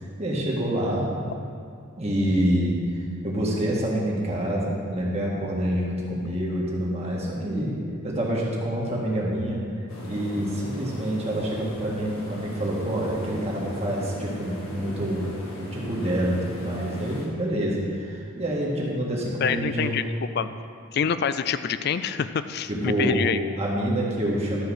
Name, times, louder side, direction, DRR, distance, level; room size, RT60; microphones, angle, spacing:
voice 1, 0.2-1.1 2.0-9.6 10.0-15.3 15.6-20.0 22.7-23.2 23.6-24.6, right 1 dB, 30° right, -4 dB, 1.7 m, -27 dB
sound 1, 9.9-17.3, left 1 dB, 85° left, 1.8 m, -39 dB
voice 2, 19.4-20.0 20.4-20.5 20.9-23.4, left 6 dB, 45° left, 12 dB, 0.3 m, -26 dB
12.0 x 4.8 x 6.3 m, 2.3 s
head